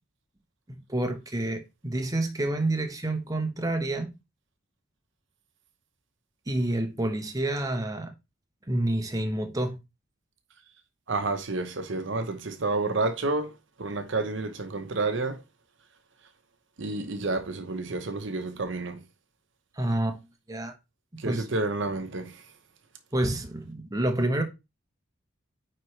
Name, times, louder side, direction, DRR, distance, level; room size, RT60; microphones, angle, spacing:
voice 1, 0.9-4.1 6.5-8.1 8.7-9.8 19.8-20.2 20.5-20.7 21.2-21.5 23.1-24.4, right 1 dB, 15° right, 1.0 m, -28 dB
voice 2, 11.1-13.5 13.8-15.4 16.8-19.0 21.2-22.4, right 3 dB, 60° right, 0.9 m, -30 dB
9.4 x 4.3 x 3.2 m
head